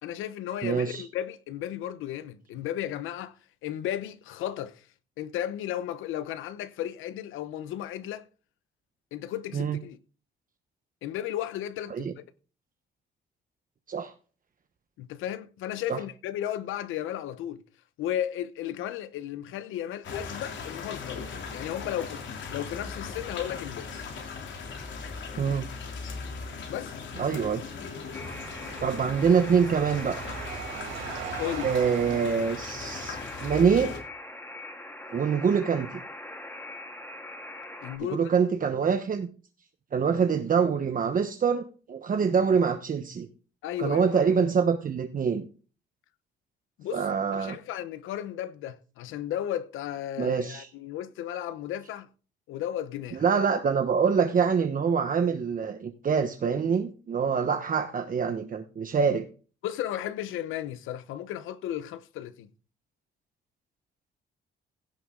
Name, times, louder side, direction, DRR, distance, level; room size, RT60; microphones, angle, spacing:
voice 1, 0.0-3.3 3.6-4.8 5.2-8.2 9.1-10.0 11.0-12.2 15.0-17.6 18.0-22.2 22.5-23.9 26.7-26.9 31.4-31.7 37.8-38.3 43.6-44.1 46.8-47.0 47.3-52.1 52.5-53.2 59.6-62.5, left 11 dB, 90° left, 0.9 m, -34 dB
voice 2, 0.6-1.0 9.5-9.8 11.9-12.1 13.9-14.1 15.9-16.0 25.4-25.7 27.2-27.6 28.8-30.2 31.6-33.9 35.1-36.0 38.1-39.3 39.9-43.3 43.8-45.4 46.9-47.6 50.2-50.7 53.1-59.2, right 6 dB, 45° right, 1.1 m, -25 dB
sound 1, 20.0-34.0, left 5 dB, 70° left, 3.2 m, -39 dB
sound 2, 27.0-33.4, right 7 dB, 90° right, 4.2 m, -41 dB
Alarm, 28.1-38.0, left 1 dB, 10° left, 3.0 m, -42 dB
16.5 x 6.0 x 3.8 m
cardioid pair, 90°, 20 cm